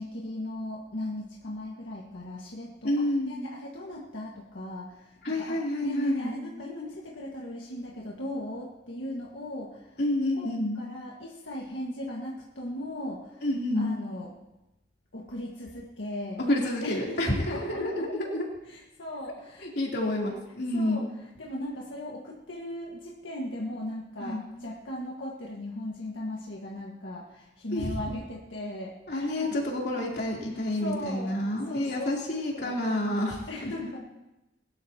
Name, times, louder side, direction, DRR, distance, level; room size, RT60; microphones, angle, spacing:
voice 1, 0.0-10.0 10.3-10.5 10.7-13.5 13.7-14.3 15.1-16.4 16.8-18.1 18.7-19.7 20.7-21.1 21.4-29.5 30.5-32.2 32.5-32.8 33.5-34.0, left 1 dB, 85° left, -3 dB, 1.7 m, -38 dB
voice 2, 2.8-3.4 5.2-6.3 10.0-10.8 13.4-13.9 16.5-18.5 19.6-21.0 24.2-24.4 27.7-27.9 29.1-33.7, left 1 dB, 60° left, -3 dB, 3.4 m, -29 dB
21.0 x 13.0 x 2.9 m, 0.97 s
head